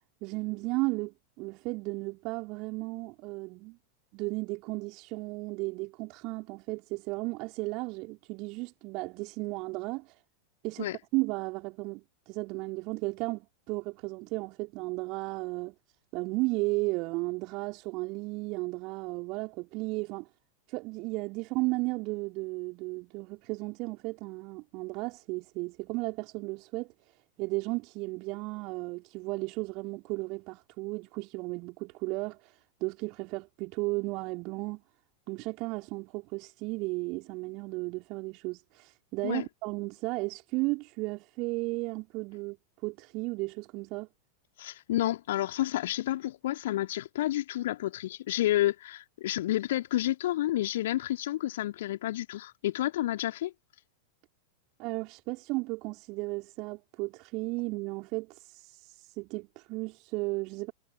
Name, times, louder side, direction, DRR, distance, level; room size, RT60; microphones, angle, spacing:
voice 1, 0.2-3.8 4.1-10.1 10.6-15.7 16.1-20.3 20.7-26.9 27.4-34.8 35.3-42.6 42.8-44.1 54.8-60.7, right 25 dB, 40° right, 3.5 m, -34 dB
voice 2, 44.6-53.5, left 14 dB, 55° left, 2.4 m, -30 dB
figure-of-eight pair, 90°, 0 cm